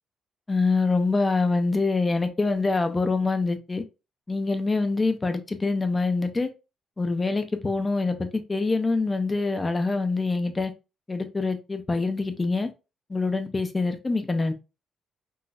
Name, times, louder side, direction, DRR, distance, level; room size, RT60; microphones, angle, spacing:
voice 1, 0.5-3.8 4.3-6.5 7.0-10.7 11.1-12.7 13.1-14.5, left 3 dB, 25° left, 0.5 m, -25 dB
3.9 x 2.6 x 2.4 m
cardioid pair, 90°, 0 cm